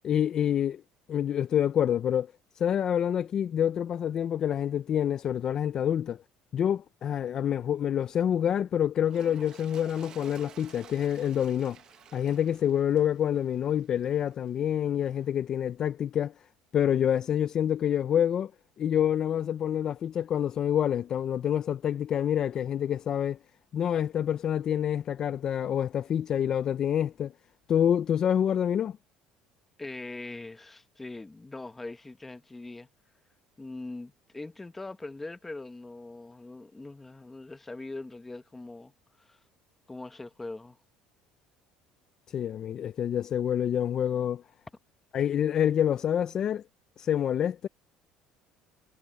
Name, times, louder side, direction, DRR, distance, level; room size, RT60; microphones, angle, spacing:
voice 1, 0.0-0.8 1.1-6.2 6.5-11.8 12.1-16.3 16.7-18.5 18.8-23.4 23.7-27.3 27.7-29.0 42.3-44.4 45.1-46.6 47.0-47.7, left 9 dB, 30° left, 0.3 m, -27 dB
Toilet flush, 9.0-14.5 15.2-15.3, right 9 dB, 35° right, 1.0 m, -53 dB
voice 2, 29.8-32.9 33.6-38.9 39.2-39.4 39.9-40.8, left 2 dB, 10° left, 0.9 m, -41 dB
cardioid pair, 170°, 2 cm